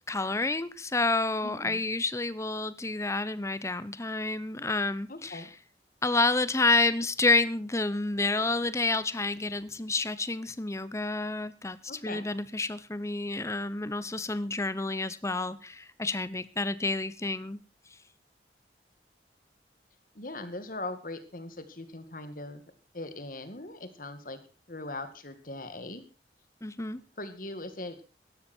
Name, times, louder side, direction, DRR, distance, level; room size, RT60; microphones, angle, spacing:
voice 1, 0.1-5.5 6.0-17.6 26.6-27.0, left 3 dB, 15° left, 16 dB, 0.8 m, -29 dB
voice 2, 1.4-1.8 5.1-5.5 11.9-12.3 20.1-22.6 22.9-24.4 24.7-26.0 27.2-28.0, left 2 dB, 50° left, 10 dB, 2.1 m, -40 dB
17.0 x 13.0 x 4.5 m, 0.34 s
head